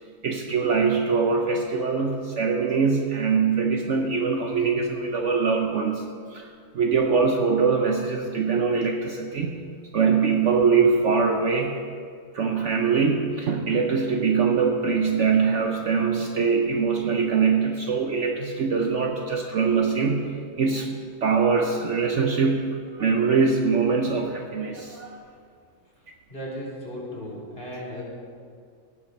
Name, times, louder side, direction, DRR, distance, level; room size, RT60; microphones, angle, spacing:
voice 1, 0.2-9.6 9.9-11.8 12.3-20.9 21.2-25.2, right 5 dB, 55° right, 2 dB, 1.0 m, -23 dB
voice 2, 26.3-28.0, equal, 35° left, -6 dB, 3.4 m, -35 dB
16.5 x 7.3 x 5.2 m, 2.1 s
omnidirectional pair, 1.6 m